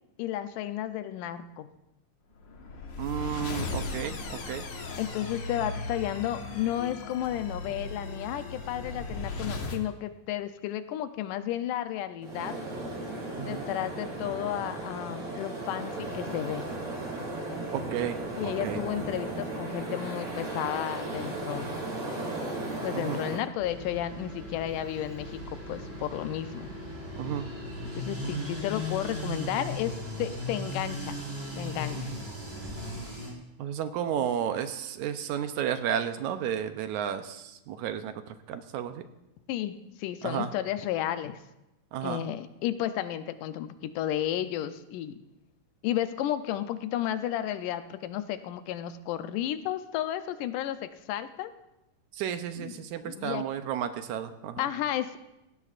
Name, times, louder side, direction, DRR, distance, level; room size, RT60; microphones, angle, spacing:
voice 1, 0.2-1.7 5.0-12.6 13.4-16.7 18.3-21.8 22.8-26.7 28.0-31.2 31.6-32.1 39.5-41.4 42.0-45.2 45.8-51.5 52.6-53.4 54.6-55.2, left 12 dB, 85° left, 10 dB, 2.2 m, -33 dB
sound 1, 2.4-9.8, left 3 dB, 55° left, 1.4 m, -37 dB
voice 2, 3.0-4.6 13.4-13.6 17.7-18.2 18.4-18.8 22.9-23.2 27.2-27.5 28.2-28.5 32.0-32.2 33.6-38.1 38.5-39.0 40.2-40.5 41.9-42.2 52.1-54.7, right 9 dB, 75° right, 9 dB, 2.0 m, -32 dB
sound 2, 12.2-23.4, right 2 dB, 50° right, 4.9 m, -36 dB
sound 3, 23.6-33.3, left 1 dB, 25° right, 4.3 m, -37 dB
18.0 x 16.0 x 2.5 m, 0.93 s
omnidirectional pair, 3.6 m